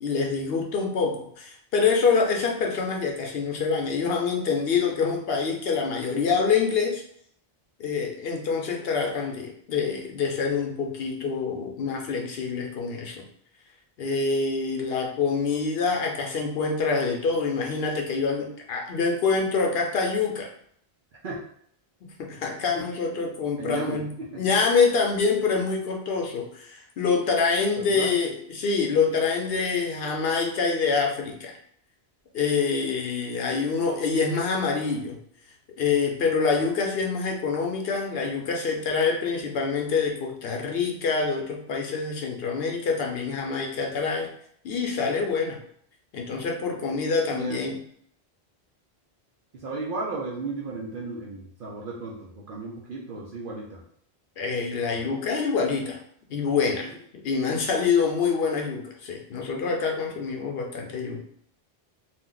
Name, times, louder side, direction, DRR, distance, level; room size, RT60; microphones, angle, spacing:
voice 1, 0.0-7.0 7.8-13.3 14.0-20.5 22.0-31.6 32.3-35.2 35.8-44.3 44.6-45.6 46.1-47.8 54.4-56.0 56.3-61.2, left 5 dB, 70° left, 1 dB, 0.8 m, -26 dB
voice 2, 23.6-24.4 27.8-28.2 47.3-47.6 49.5-53.8 56.8-56.9, right 3 dB, 60° right, -3 dB, 0.7 m, -35 dB
2.6 x 2.1 x 3.7 m, 0.64 s
omnidirectional pair, 1.1 m